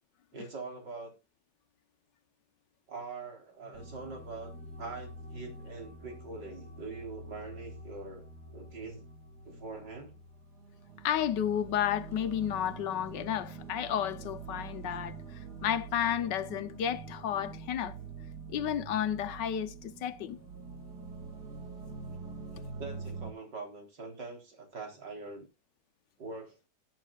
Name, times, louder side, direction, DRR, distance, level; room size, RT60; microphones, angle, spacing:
voice 1, 0.3-1.1 2.9-4.5 4.8-8.3 8.5-9.0 9.4-10.2 22.8-25.4 26.2-26.6, right 3 dB, 85° right, 4.2 m, -43 dB
sound 1, 3.7-23.3, right 4 dB, 65° right, 3.0 m, -45 dB
voice 2, 11.0-15.2 15.6-18.0 18.5-20.4, left 10 dB, 90° left, 1.6 m, -32 dB
18.5 x 8.9 x 2.4 m
omnidirectional pair, 1.8 m